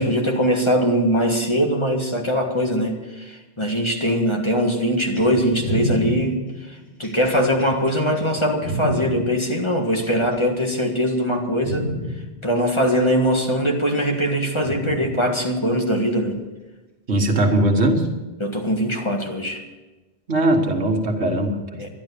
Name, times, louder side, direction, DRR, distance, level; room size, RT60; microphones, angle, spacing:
voice 1, 0.0-6.4 7.0-11.9 12.4-16.4 18.4-19.6 21.8-21.9, equal, 25° left, 1 dB, 1.7 m, -21 dB
sound 1, 5.2-9.1 10.0-10.7 11.2-11.3 11.6-12.1 13.2-13.3 14.6-15.1 16.2-16.3, right 1 dB, 85° left, 3.9 m, -28 dB
voice 2, 17.1-18.1 20.3-21.8, right 1 dB, 85° right, 3 dB, 1.8 m, -20 dB
12.0 x 11.0 x 6.8 m, 1.1 s
omnidirectional pair, 1.1 m